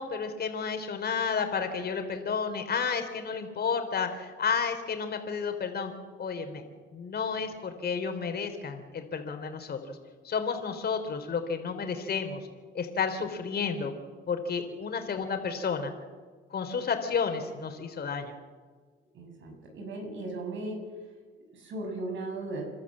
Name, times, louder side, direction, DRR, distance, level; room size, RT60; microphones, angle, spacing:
voice 1, 0.0-5.9 6.2-6.6 6.9-10.0 10.2-12.5 12.7-13.9 14.3-15.9 16.5-18.4, left 5 dB, 55° left, 6 dB, 3.4 m, -31 dB
voice 2, 19.1-20.8 21.5-22.7, right 2 dB, 70° right, 2 dB, 7.0 m, -37 dB
28.5 x 12.5 x 7.4 m, 1.5 s
cardioid pair, 90°, 20 cm